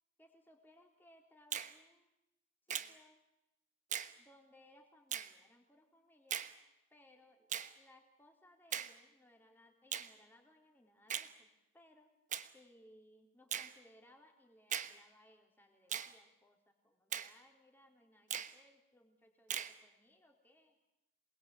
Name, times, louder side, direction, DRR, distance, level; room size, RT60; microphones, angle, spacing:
voice 1, 0.2-2.1 2.7-3.2 4.2-6.5 6.9-7.5 7.8-11.5 11.7-12.1 12.5-20.8, left 1 dB, 10° left, 2 dB, 3.7 m, -65 dB
Finger snapping, 1.5-1.7 2.7-2.9 3.9-4.1 5.1-5.3 6.3-6.5 7.5-7.7 8.7-8.9 9.9-10.1 11.1-11.3 12.3-12.5 13.5-13.7 14.7-14.9 15.9-16.1 17.1-17.3 18.3-18.5 19.5-19.7, right 9 dB, 40° right, 1.1 m, -39 dB
27.5 x 20.5 x 8.5 m, 0.88 s
head